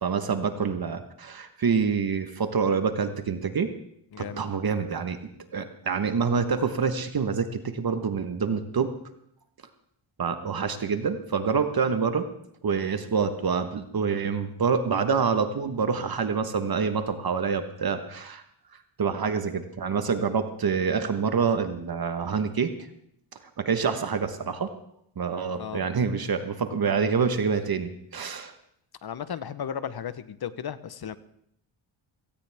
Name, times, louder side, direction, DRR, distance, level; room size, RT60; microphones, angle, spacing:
voice 1, 0.0-3.7 4.2-5.2 5.5-8.9 10.2-12.3 12.6-18.4 19.0-22.7 23.6-24.7 25.2-28.5, right 5 dB, 45° right, 8 dB, 1.2 m, -26 dB
voice 2, 4.1-4.5 25.5-25.8 29.0-31.2, left 8 dB, 50° left, 14 dB, 0.9 m, -35 dB
17.0 x 16.5 x 3.5 m, 0.72 s
cardioid pair, 85°, 49 cm